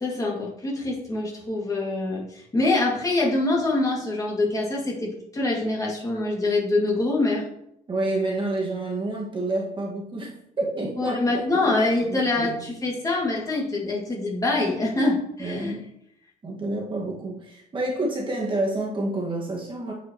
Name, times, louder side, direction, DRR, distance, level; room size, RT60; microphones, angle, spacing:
voice 1, 0.0-7.5 11.0-15.7, left 2 dB, 20° left, -3 dB, 2.1 m, -25 dB
voice 2, 7.9-11.2 11.6-11.7 12.0-12.6 15.4-15.8 16.4-19.9, right 2 dB, 30° right, -2 dB, 1.7 m, -28 dB
9.2 x 5.0 x 3.0 m, 0.78 s
cardioid pair, 110°, 17 cm